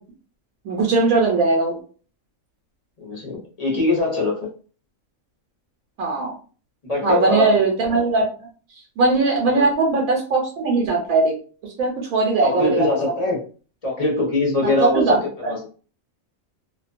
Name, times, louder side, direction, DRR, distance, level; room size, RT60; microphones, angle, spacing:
voice 1, 0.6-1.8 6.0-6.3 7.0-8.2 9.0-11.3 11.6-12.9 14.6-15.5, right 3 dB, 80° right, -1 dB, 1.1 m, -20 dB
voice 2, 3.0-4.4 6.8-7.6 9.5-9.7 12.4-13.4 13.8-15.6, left 2 dB, 35° left, -3 dB, 0.7 m, -22 dB
2.5 x 2.2 x 2.5 m, 0.39 s
omnidirectional pair, 1.5 m